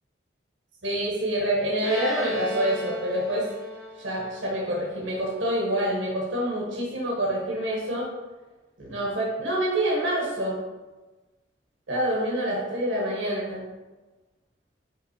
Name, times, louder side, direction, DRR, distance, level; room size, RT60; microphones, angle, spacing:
voice 1, 0.8-3.5 4.0-8.1 8.8-10.6 11.9-13.6, right 1 dB, 80° right, -3 dB, 1.4 m, -27 dB
Bowed string instrument, 1.8-5.4, equal, 5° left, 1.9 m, -36 dB
5.7 x 3.5 x 5.0 m, 1.2 s
head